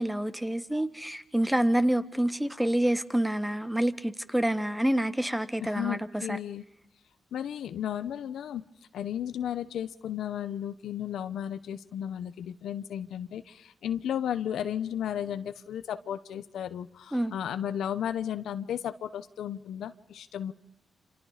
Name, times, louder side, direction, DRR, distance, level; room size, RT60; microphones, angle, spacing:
voice 1, 0.0-6.0 6.3-6.4 17.1-17.3, right 1 dB, 5° right, 1.6 m, -27 dB
voice 2, 5.6-6.6 7.3-8.6 8.9-20.5, left 10 dB, 90° left, 1.1 m, -34 dB
29.0 x 27.0 x 5.1 m
cardioid pair, 80°, 0 cm